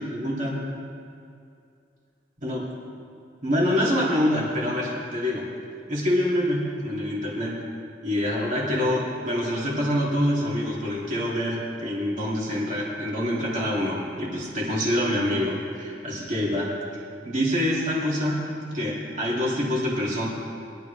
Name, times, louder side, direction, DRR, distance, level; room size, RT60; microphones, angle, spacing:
voice 1, 0.1-0.6 2.4-2.6 3.4-5.5 5.9-7.6 8.0-16.7 17.2-18.4 18.7-20.3, left 1 dB, 45° right, -5 dB, 3.2 m, -26 dB
22.5 x 12.5 x 3.6 m, 2.4 s
head